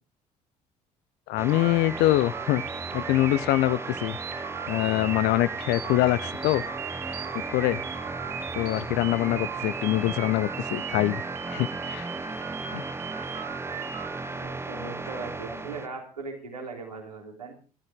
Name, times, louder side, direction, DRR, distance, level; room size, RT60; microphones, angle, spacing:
voice 1, 1.3-2.6 2.9-4.2 4.7-6.6 7.5-7.8 8.5-11.2 11.5-12.1 12.7-12.8 13.3-13.5, left 16 dB, 60° left, 0.7 m, -24 dB
sound 1, 1.4-15.9, right 3 dB, 15° right, 0.9 m, -36 dB
sound 2, 1.5-14.5, right 9 dB, 70° right, 6.1 m, -38 dB
voice 2, 14.3-17.5, right 3 dB, 85° right, 3.4 m, -39 dB
21.5 x 13.0 x 3.7 m
figure-of-eight pair, 55°, 20 cm